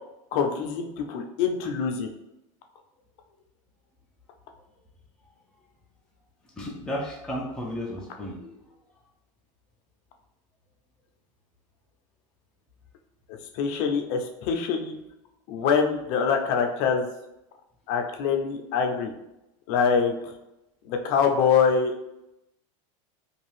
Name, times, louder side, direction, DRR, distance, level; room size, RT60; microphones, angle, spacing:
voice 1, 0.3-2.1 13.5-14.9 15.5-17.1 17.9-19.1 19.7-20.1 20.9-21.9, left 6 dB, 60° left, 3 dB, 0.6 m, -24 dB
voice 2, 6.6-8.6, equal, 5° left, -3 dB, 0.5 m, -33 dB
2.6 x 2.3 x 3.2 m, 0.89 s
supercardioid pair, 115°, 18 cm